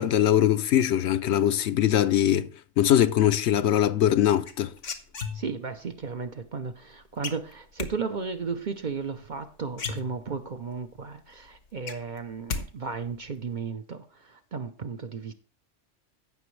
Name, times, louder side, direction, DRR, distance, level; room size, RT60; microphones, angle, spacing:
voice 1, 0.0-2.5 2.8-4.7, left 11 dB, 70° left, 0.8 m, -22 dB
sound 1, 4.4-5.8 7.2-7.9 9.3-9.4 9.7-10.6 11.0-11.1 11.4-12.6 12.9-13.4, left 5 dB, 85° left, 1.5 m, -35 dB
voice 2, 5.3-15.3, right 5 dB, 50° right, 0.7 m, -34 dB
16.0 x 6.0 x 3.2 m
omnidirectional pair, 1.2 m